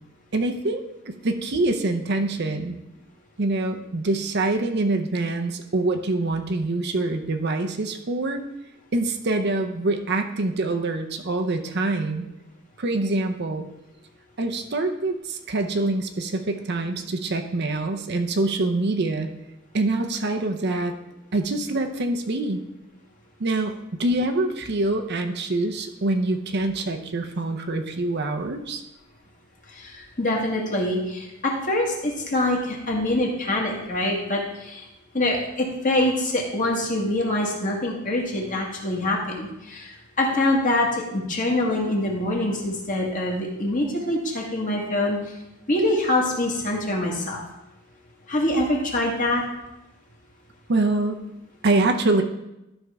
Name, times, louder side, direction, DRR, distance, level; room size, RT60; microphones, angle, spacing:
voice 1, 0.3-2.7 3.4-8.4 8.9-12.3 12.8-13.7 14.4-19.3 19.7-20.9 21.3-22.6 23.4-28.8 50.7-51.2 51.6-52.2, right 2 dB, 55° right, 6 dB, 0.7 m, -25 dB
voice 2, 29.8-34.8 35.1-45.2 45.7-47.4 48.3-49.4, left 1 dB, 40° left, -1 dB, 1.7 m, -24 dB
12.5 x 5.4 x 3.5 m, 0.90 s
head